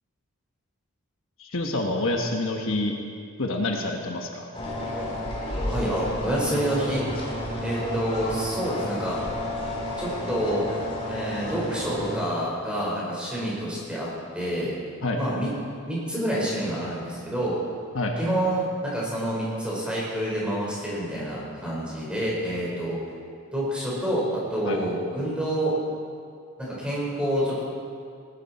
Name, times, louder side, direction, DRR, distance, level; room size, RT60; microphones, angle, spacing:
voice 1, 1.4-2.9 3.4-4.4 15.0-15.2 17.9-18.1 24.6-24.8, left 2 dB, 65° left, 2 dB, 1.2 m, -27 dB
Ski Lift, 4.5-12.2, left 1 dB, 25° left, 2.4 m, -31 dB
voice 2, 5.7-7.0 7.6-9.2 10.0-10.7 11.1-14.1 14.3-14.7 15.2-15.5 15.9-17.6 18.2-23.0 23.5-25.7 26.6-27.6, right 1 dB, 5° right, -6 dB, 4.3 m, -28 dB
19.5 x 12.5 x 4.2 m, 2.3 s
head